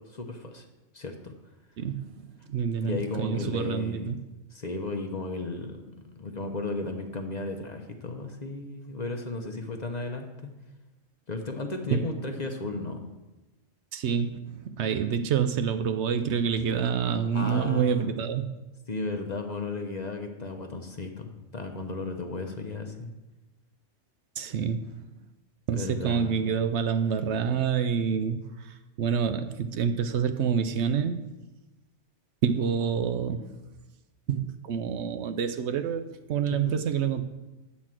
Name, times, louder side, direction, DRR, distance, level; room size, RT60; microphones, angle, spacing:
voice 1, 0.1-0.6 0.9-1.3 2.8-4.1 4.5-5.9 6.2-10.5 11.3-13.1 17.3-18.1 18.9-23.1 25.7-26.5 36.5-36.7, left 3 dB, 40° left, 4 dB, 0.8 m, -34 dB
voice 2, 1.8-4.2 11.9-12.0 13.9-18.5 24.4-24.9 25.7-31.2 32.4-33.6 34.3-36.0 36.3-37.2, right 7 dB, 70° right, 9 dB, 0.8 m, -27 dB
9.2 x 4.2 x 7.4 m, 1.1 s
omnidirectional pair, 1.3 m